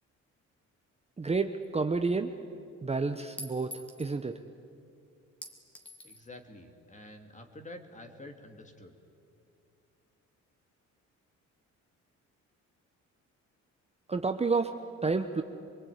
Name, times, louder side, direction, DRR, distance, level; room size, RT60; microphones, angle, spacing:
voice 1, 1.2-2.3 2.8-3.7 4.0-4.3 14.1-14.7 15.0-15.4, right 4 dB, 20° right, 7 dB, 1.0 m, -29 dB
Chink clink, 1.6-1.7 3.4-4.2 5.4-6.3, left 1 dB, 5° left, 2.7 m, -46 dB
voice 2, 6.0-8.9, left 1 dB, 25° left, 5 dB, 2.7 m, -48 dB
23.5 x 23.0 x 9.4 m, 2.5 s
cardioid pair, 90°, 30 cm